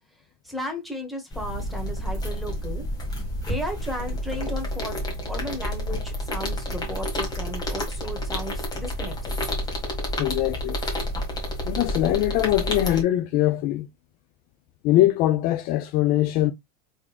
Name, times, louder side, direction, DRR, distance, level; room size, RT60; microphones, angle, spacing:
voice 1, 0.4-2.9 3.5-9.5, left 1 dB, ahead, 1.3 m, -35 dB
sound 1, 1.3-13.0, equal, 20° left, 1.7 m, -30 dB
voice 2, 10.2-10.8 11.7-13.9 14.8-16.5, left 14 dB, 45° left, 0.4 m, -22 dB
3.7 x 3.6 x 2.3 m
supercardioid pair, 140°, 20 cm